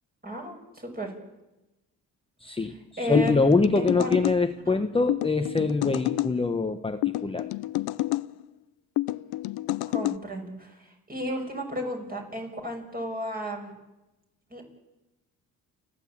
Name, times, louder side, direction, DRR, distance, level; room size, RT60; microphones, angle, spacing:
voice 1, 0.2-1.1 3.0-4.1 4.6-4.8 9.9-13.7 14.5-14.6, equal, 25° right, 2 dB, 6.3 m, -34 dB
voice 2, 2.4-2.7 3.0-7.5, left 3 dB, 15° left, 6 dB, 1.1 m, -24 dB
sound 1, 3.1-4.4 5.1-6.3 7.0-8.3 9.0-10.2, left 17 dB, 85° left, 0.7 m, -28 dB
29.5 x 12.0 x 8.7 m, 1.0 s
cardioid pair, 90°, 37 cm